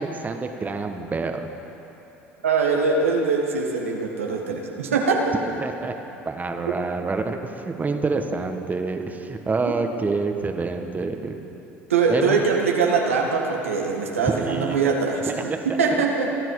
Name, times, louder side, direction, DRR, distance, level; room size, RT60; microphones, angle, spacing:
voice 1, 0.0-1.5 5.4-5.9 6.2-11.3 12.1-12.4 14.3-14.8 15.4-15.8, right 3 dB, 25° right, 5 dB, 1.5 m, -27 dB
voice 2, 2.4-5.3 11.9-16.3, right 4 dB, 90° right, 0 dB, 1.7 m, -22 dB
28.0 x 10.5 x 4.9 m, 3.0 s
hypercardioid pair, 70°, 7 cm